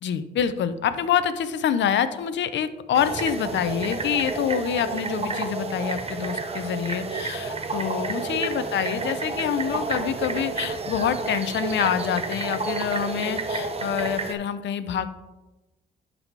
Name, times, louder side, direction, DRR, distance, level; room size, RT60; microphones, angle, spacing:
voice 1, 0.0-15.2, left 8 dB, 65° left, 12 dB, 0.7 m, -26 dB
sound 1, 2.9-14.3, right 3 dB, 30° right, 1.0 m, -30 dB
11.0 x 4.2 x 4.6 m, 1.1 s
cardioid pair, 90°, 20 cm